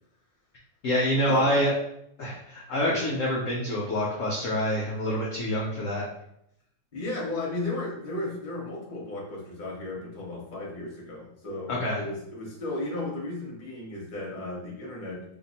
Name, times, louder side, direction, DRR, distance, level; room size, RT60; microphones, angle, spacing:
voice 1, 0.8-1.7 2.2-6.0 11.7-12.0, left 1 dB, 65° left, -3 dB, 0.7 m, -26 dB
voice 2, 6.9-15.2, left 2 dB, 35° left, -3 dB, 0.8 m, -34 dB
2.9 x 2.5 x 4.1 m, 0.76 s
omnidirectional pair, 2.0 m